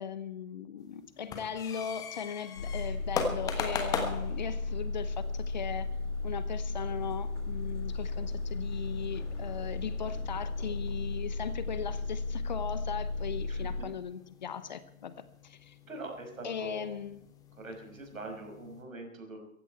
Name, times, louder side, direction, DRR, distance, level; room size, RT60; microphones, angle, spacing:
voice 1, 0.0-5.9 6.2-15.1 15.4-15.8 16.4-17.3, left 7 dB, 30° left, 14 dB, 0.8 m, -38 dB
sound 1, 0.8-18.8, left 5 dB, 10° left, 1.1 m, -42 dB
sound 2, 2.6-13.8, left 3 dB, 55° left, 3.1 m, -35 dB
voice 2, 13.5-13.9 15.9-16.9 17.6-19.4, right 2 dB, 70° right, 3 dB, 6.1 m, -43 dB
17.0 x 15.5 x 4.5 m, 0.75 s
figure-of-eight pair, 135°, 42 cm